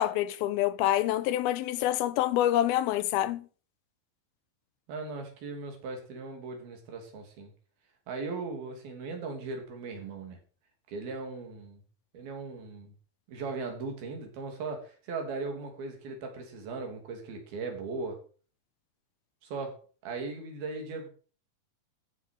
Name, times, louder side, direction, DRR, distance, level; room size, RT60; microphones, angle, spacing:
voice 1, 0.0-3.5, left 13 dB, 90° left, 2.7 m, -27 dB
voice 2, 4.9-7.5 8.1-10.4 10.9-11.8 12.1-12.9 13.3-18.2 19.4-21.1, right 3 dB, 85° right, 4.8 m, -38 dB
14.5 x 6.6 x 6.5 m
omnidirectional pair, 4.2 m